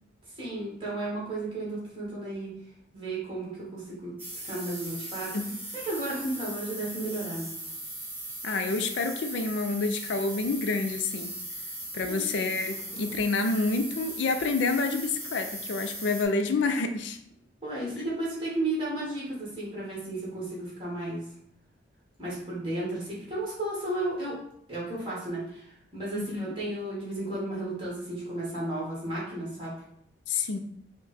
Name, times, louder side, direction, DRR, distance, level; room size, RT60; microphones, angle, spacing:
voice 1, 0.4-2.5 2.9-4.1 4.4-5.4 5.7-7.5 12.0-12.2 17.6-21.3 22.2-24.4 24.7-29.7, right 2 dB, 25° right, -7 dB, 1.7 m, -33 dB
sound 1, 4.2-16.2, right 1 dB, 10° right, 0.8 m, -39 dB
voice 2, 8.4-11.3 11.9-17.2 26.1-26.5 30.3-30.6, left 3 dB, 70° left, 7 dB, 0.4 m, -28 dB
4.7 x 2.2 x 4.1 m, 0.71 s
head